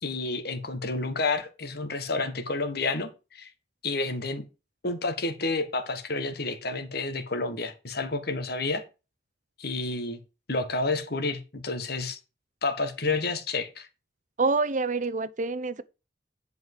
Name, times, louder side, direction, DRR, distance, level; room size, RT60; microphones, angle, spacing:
voice 1, 0.0-3.5 3.8-4.4 4.8-8.8 9.6-10.2 10.5-12.2 12.6-13.9, left 3 dB, 60° left, 1.7 m, -30 dB
voice 2, 14.4-15.8, right 3 dB, 45° right, 0.8 m, -26 dB
10.5 x 5.5 x 4.9 m
head